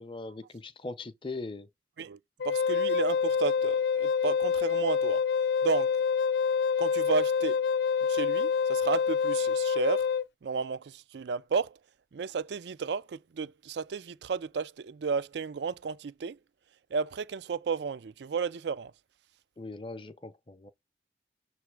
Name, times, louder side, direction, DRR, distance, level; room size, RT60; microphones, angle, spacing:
voice 1, 0.0-1.7 19.6-20.7, left 3 dB, 30° left, 0.6 m, -40 dB
Wind instrument woodwind instrument, 2.4-10.2, left 6 dB, 70° left, 0.4 m, -27 dB
voice 2, 2.4-5.2 5.6-5.9 6.8-7.6 8.1-10.1 10.4-11.8 12.1-16.4 16.9-18.9, right 5 dB, 75° right, 0.4 m, -32 dB
6.7 x 3.2 x 4.7 m
head